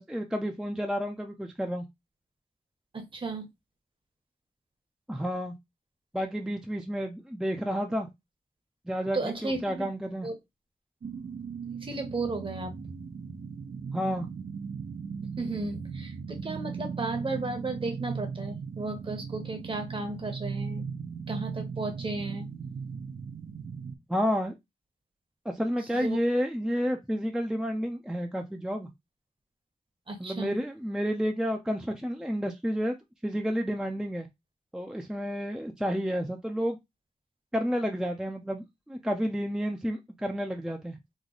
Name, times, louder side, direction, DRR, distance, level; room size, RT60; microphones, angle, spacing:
voice 1, 0.0-1.9 5.1-5.5 6.1-8.1 8.9-10.3 13.9-14.3 24.1-24.5 25.5-28.9 30.2-33.0 33.2-34.3 34.7-36.8 37.5-41.0, equal, 5° right, 0.4 m, -30 dB
voice 2, 2.9-3.5 9.1-9.9 10.2-10.3 11.8-12.7 15.4-20.9 21.3-22.5 25.9-26.2 30.1-30.6, right 3 dB, 35° right, 0.9 m, -34 dB
sound 1, 11.0-24.0, right 6 dB, 70° right, 0.7 m, -38 dB
3.1 x 2.1 x 3.8 m
wide cardioid pair, 95°, 15 cm